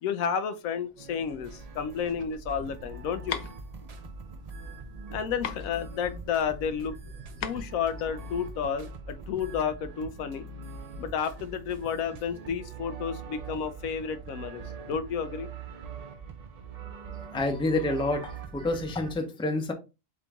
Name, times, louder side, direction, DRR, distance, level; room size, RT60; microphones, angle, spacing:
voice 1, 0.0-3.4 5.1-6.9 7.4-10.5 11.0-15.5, left 7 dB, 90° left, 1.0 m, -31 dB
sound 1, 0.8-10.2, right 2 dB, 30° right, 0.9 m, -48 dB
sound 2, 1.0-19.1, right 4 dB, 50° right, 0.4 m, -43 dB
sound 3, 2.1-8.7, left 9 dB, 65° left, 0.8 m, -40 dB
voice 2, 17.3-19.7, left 2 dB, 5° left, 0.4 m, -28 dB
3.9 x 3.7 x 3.5 m
omnidirectional pair, 1.4 m